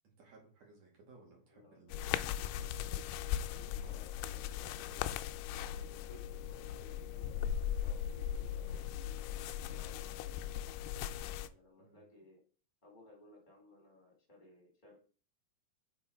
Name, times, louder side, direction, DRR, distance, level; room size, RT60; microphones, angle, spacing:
voice 1, 0.0-3.0 11.8-12.1, right 3 dB, 45° right, -1 dB, 3.1 m, -61 dB
voice 2, 1.5-1.9 3.5-9.3 9.7-12.4 12.8-15.0, left 1 dB, 20° left, -1 dB, 1.5 m, -60 dB
sound 1, 1.9-11.5, left 10 dB, 85° left, 2.6 m, -38 dB
6.8 x 5.4 x 4.4 m, 0.39 s
omnidirectional pair, 4.7 m